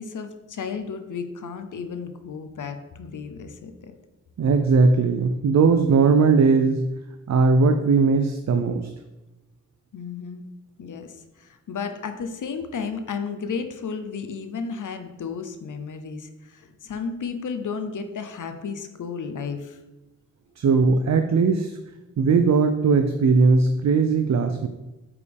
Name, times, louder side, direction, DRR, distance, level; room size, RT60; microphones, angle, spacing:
voice 1, 0.0-3.9 9.9-10.4 10.8-11.1 11.4-19.8, left 5 dB, 90° left, 8 dB, 0.7 m, -33 dB
voice 2, 4.4-6.9 7.3-8.9 20.6-21.7 22.2-24.7, right 4 dB, 65° right, 6 dB, 0.5 m, -19 dB
8.2 x 5.2 x 3.5 m, 1.0 s
wide cardioid pair, 115°, 30 cm